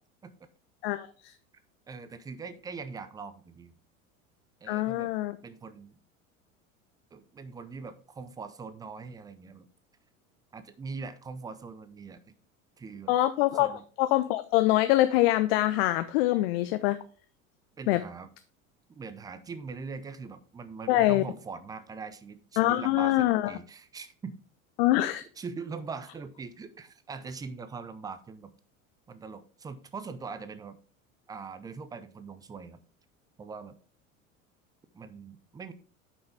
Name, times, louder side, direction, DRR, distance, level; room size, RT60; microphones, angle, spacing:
voice 1, 0.8-1.3 4.7-5.4 13.1-13.7 14.0-17.0 17.9-18.0 20.9-21.2 22.6-23.5 24.8-25.2, left 16 dB, 45° left, 11 dB, 0.5 m, -24 dB
voice 2, 1.9-3.8 4.6-5.1 5.4-6.0 7.1-9.7 10.5-12.3 12.8-13.2 13.5-13.8 17.8-18.3 18.9-24.3 25.4-28.5 29.1-30.8 31.3-32.8 33.4-33.8 34.9-35.7, right 4 dB, 10° right, 13 dB, 0.5 m, -42 dB
9.4 x 5.5 x 3.4 m, 0.42 s
figure-of-eight pair, 75°, 42 cm